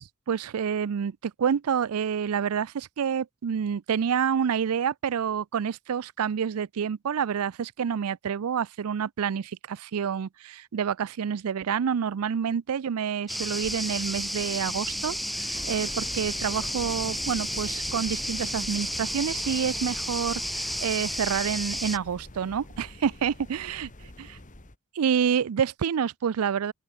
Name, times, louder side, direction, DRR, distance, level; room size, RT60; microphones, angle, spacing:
voice 1, 0.3-23.9 25.0-26.7, right 7 dB, 80° right, 0.4 m, -28 dB
sound 1, 13.3-22.0, equal, ahead, 0.3 m, -32 dB
sound 2, 15.5-24.7, left 2 dB, 35° left, 1.9 m, -45 dB
open air
head